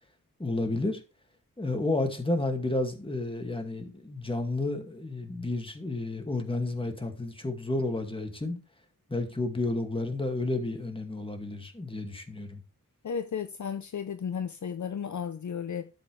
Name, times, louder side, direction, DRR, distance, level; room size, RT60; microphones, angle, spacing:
voice 1, 0.4-1.0 1.6-8.6 9.1-12.6, left 2 dB, 15° left, 2.1 m, -31 dB
voice 2, 13.0-15.9, left 7 dB, 60° left, 0.7 m, -34 dB
12.5 x 7.8 x 3.3 m
wide cardioid pair, 120°, 34 cm